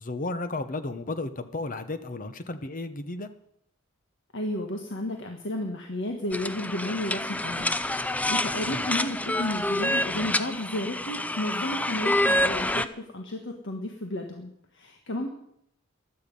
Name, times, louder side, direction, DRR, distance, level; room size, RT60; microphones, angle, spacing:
voice 1, 0.0-3.3 8.7-8.8, left 2 dB, 40° left, 11 dB, 1.0 m, -33 dB
voice 2, 4.3-15.3, left 1 dB, 60° left, 2 dB, 1.5 m, -33 dB
sound 1, 6.3-12.9, left 1 dB, 5° left, 0.4 m, -27 dB
16.0 x 11.5 x 5.4 m, 0.74 s
head